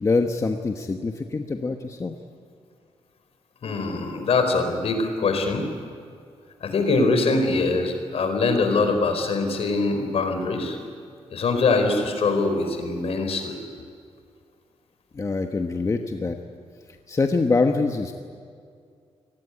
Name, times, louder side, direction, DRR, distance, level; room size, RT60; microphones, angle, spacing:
voice 1, 0.0-2.2 15.1-16.4 17.1-18.1, left 3 dB, 30° left, 5 dB, 1.2 m, -24 dB
voice 2, 3.6-5.7 6.6-10.8 11.3-13.6, left 3 dB, 65° left, 6 dB, 4.4 m, -23 dB
27.0 x 19.5 x 9.9 m, 2.2 s
wide cardioid pair, 150°, 11 cm